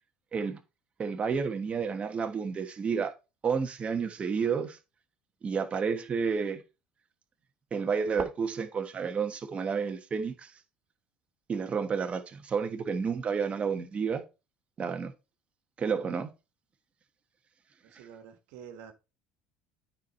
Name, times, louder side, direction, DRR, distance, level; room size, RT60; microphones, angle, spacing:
voice 1, 1.0-3.1 3.4-4.8 5.4-6.6 7.7-10.5 11.5-14.2 14.8-15.1 15.8-16.3, right 6 dB, 35° right, 1.3 m, -30 dB
voice 2, 17.8-18.9, right 7 dB, 75° right, 1.5 m, -48 dB
9.2 x 4.6 x 4.3 m
supercardioid pair, 95°, 4 cm